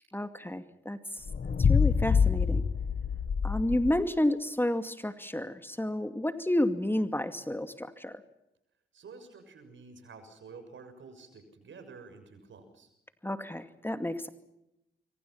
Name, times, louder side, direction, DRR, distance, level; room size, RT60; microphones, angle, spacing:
voice 1, 0.1-1.2 1.6-2.6 3.4-8.2 13.2-14.3, left 1 dB, 10° left, 8 dB, 2.4 m, -31 dB
sound 1, 1.2-4.0, left 6 dB, 45° left, 1.4 m, -26 dB
voice 2, 8.9-12.9, right 4 dB, 65° right, 8 dB, 6.7 m, -50 dB
26.5 x 24.5 x 5.8 m, 0.84 s
supercardioid pair, 50°, 21 cm